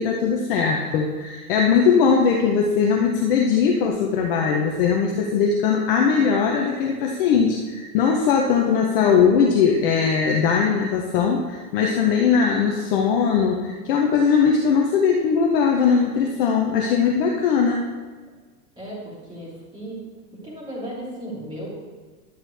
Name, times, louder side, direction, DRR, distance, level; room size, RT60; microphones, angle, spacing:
voice 1, 0.0-17.9, left 6 dB, 35° left, 1 dB, 0.7 m, -20 dB
voice 2, 18.7-20.0 20.4-21.7, right 1 dB, 10° right, -8 dB, 3.1 m, -35 dB
11.0 x 7.9 x 3.3 m, 1.4 s
supercardioid pair, 165°, 49 cm